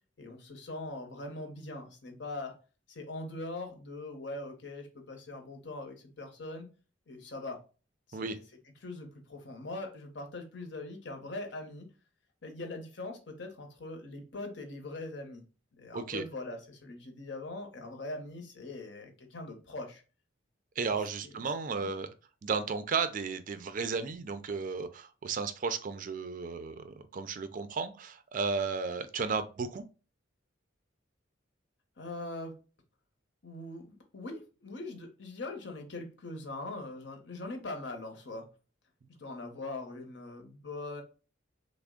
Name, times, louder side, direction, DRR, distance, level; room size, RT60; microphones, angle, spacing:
voice 1, 0.2-2.5 2.9-6.7 7.1-7.6 8.1-8.4 8.8-11.9 12.4-15.4 15.8-20.0 21.2-21.3 21.8-21.9 32.0-32.5 33.4-38.4 39.1-41.0, left 2 dB, 65° left, 4 dB, 0.8 m, -41 dB
voice 2, 15.9-16.2 20.8-22.1 22.4-29.8, right 5 dB, 45° right, 11 dB, 0.4 m, -34 dB
3.4 x 2.0 x 3.6 m, 0.34 s
head